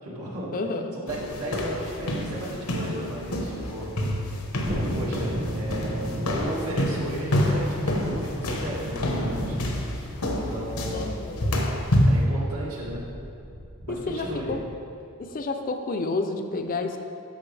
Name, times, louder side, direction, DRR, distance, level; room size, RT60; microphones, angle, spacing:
voice 1, 0.0-0.6 0.9-4.0 4.7-11.3 12.1-13.0 13.9-14.6, right 1 dB, 75° right, -5 dB, 1.9 m, -35 dB
voice 2, 0.5-1.0 10.9-11.5 13.9-14.6 15.2-17.0, left 3 dB, 40° left, 5 dB, 0.5 m, -30 dB
sound 1, 1.1-12.3, left 1 dB, 85° left, 1.0 m, -28 dB
Thunderstorm, 4.6-14.9 15.2-15.3, equal, 50° right, 1.8 m, -35 dB
13.0 x 5.4 x 3.3 m, 2.6 s
head